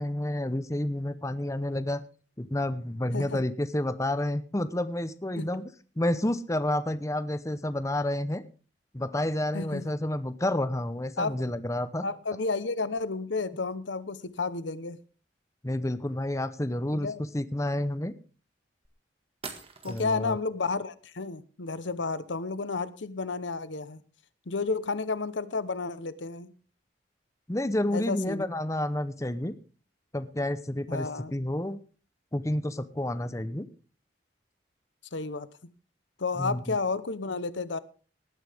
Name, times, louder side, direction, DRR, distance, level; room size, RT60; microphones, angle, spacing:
voice 1, 0.0-2.0 2.4-5.6 6.0-8.4 8.9-12.0 15.6-18.1 19.9-20.4 27.5-29.5 30.1-31.8 32.3-33.7 36.4-36.8, left 1 dB, 15° left, 12 dB, 0.8 m, -30 dB
voice 2, 9.5-9.9 11.2-11.3 12.0-15.0 17.0-17.2 19.8-24.0 24.5-26.5 27.9-28.5 30.9-31.3 35.1-35.5 36.2-37.8, left 4 dB, 85° left, 15 dB, 1.0 m, -31 dB
sound 1, 18.8-18.9 19.4-20.3, right 4 dB, 30° right, 1.8 m, -43 dB
19.0 x 10.0 x 3.5 m, 0.37 s
head